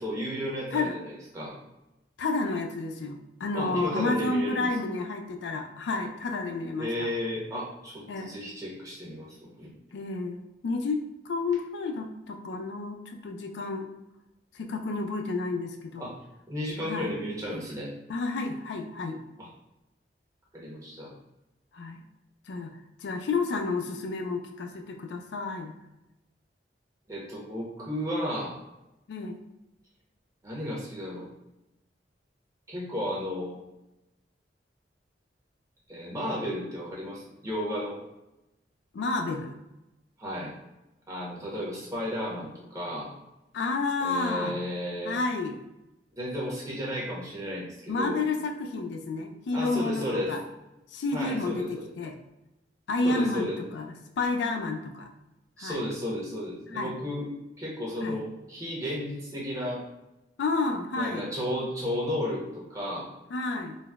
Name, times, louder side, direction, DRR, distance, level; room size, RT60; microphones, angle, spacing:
voice 1, 0.0-1.5 3.5-4.7 6.8-9.7 16.0-16.2 16.5-17.9 19.4-19.5 20.5-21.1 27.1-28.6 30.4-31.3 32.7-33.6 35.9-38.0 40.2-40.5 41.1-43.1 44.0-45.2 46.1-48.2 49.5-50.4 51.1-51.9 53.0-53.6 55.6-57.3 57.6-59.8 60.9-63.1, equal, 20° right, -5 dB, 0.8 m, -33 dB
voice 2, 2.2-7.1 8.1-8.3 9.9-13.9 14.5-16.1 16.8-17.1 18.1-19.2 21.7-22.0 22.5-25.8 29.1-29.4 38.9-39.6 43.5-44.6 45.0-45.6 47.9-50.4 50.9-52.2 52.9-55.1 55.6-55.8 56.7-56.9 58.0-58.2 60.4-61.2 63.3-63.8, left 3 dB, 70° left, 4 dB, 0.3 m, -30 dB
3.8 x 2.1 x 2.3 m, 0.93 s
head